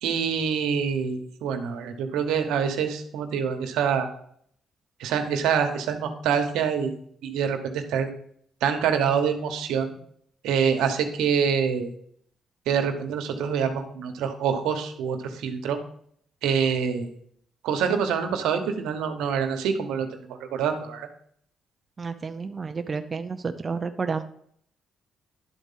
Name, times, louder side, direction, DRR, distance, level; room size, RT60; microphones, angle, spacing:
voice 1, 0.0-4.1 5.0-6.9 7.2-8.1 8.6-9.9 10.4-11.9 12.7-15.8 16.4-17.1 17.6-21.1, right 7 dB, 90° right, 6 dB, 1.0 m, -26 dB
voice 2, 22.0-24.2, right 5 dB, 35° right, 7 dB, 0.6 m, -30 dB
11.0 x 4.1 x 5.6 m, 0.66 s
cardioid pair, 90°, 0 cm